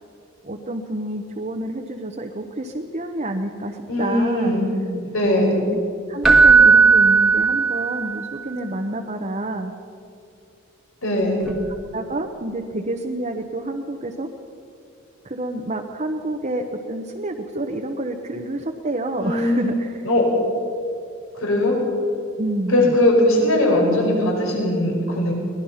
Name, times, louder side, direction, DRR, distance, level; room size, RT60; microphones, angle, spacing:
voice 1, 0.4-4.5 5.2-5.8 6.1-9.7 11.9-14.3 15.2-20.0 22.4-23.0, right 1 dB, 35° right, 2 dB, 1.0 m, -28 dB
voice 2, 3.9-4.7 5.0-5.6 11.0-11.4 19.2-19.7 20.0-20.2 21.3-21.7 22.7-25.3, left 1 dB, 75° left, 0 dB, 4.9 m, -20 dB
Keyboard (musical), 6.2-8.2 11.5-11.6, right 4 dB, ahead, 1.6 m, -14 dB
23.5 x 19.5 x 5.7 m, 2.6 s
head